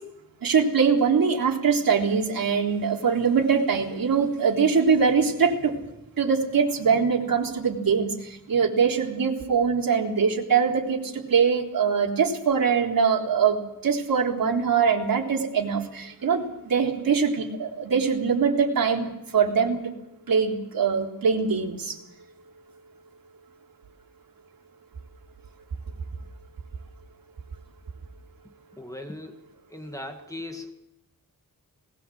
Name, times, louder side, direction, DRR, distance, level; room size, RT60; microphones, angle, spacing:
voice 1, 0.4-5.8 6.2-13.6 13.8-19.8 20.3-22.0, right 6 dB, 80° right, 0 dB, 3.7 m, -23 dB
voice 2, 28.8-29.4 29.7-30.7, left 1 dB, 10° left, 4 dB, 1.8 m, -38 dB
20.5 x 18.5 x 7.8 m, 0.85 s
wide cardioid pair, 150°, 34 cm